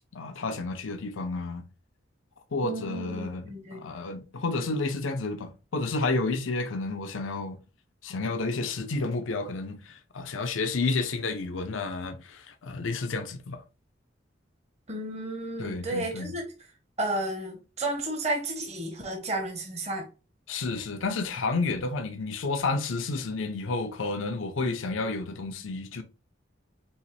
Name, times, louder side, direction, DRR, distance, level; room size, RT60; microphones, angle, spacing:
voice 1, 0.1-1.6 2.5-7.6 8.0-13.6 15.6-16.3 20.5-26.0, left 3 dB, 85° left, 0.6 m, -31 dB
voice 2, 2.6-3.8 14.9-16.5 17.0-20.1 24.6-24.8, right 1 dB, 35° right, 1.1 m, -32 dB
5.5 x 2.9 x 3.2 m
head